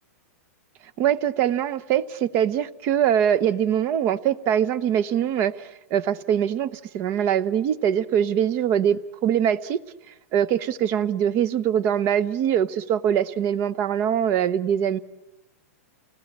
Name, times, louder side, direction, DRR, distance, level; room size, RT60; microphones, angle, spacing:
voice 1, 1.0-9.8 10.3-15.0, right 9 dB, 30° right, 17 dB, 0.9 m, -23 dB
29.5 x 19.5 x 8.8 m, 0.93 s
supercardioid pair, 165°, 8 cm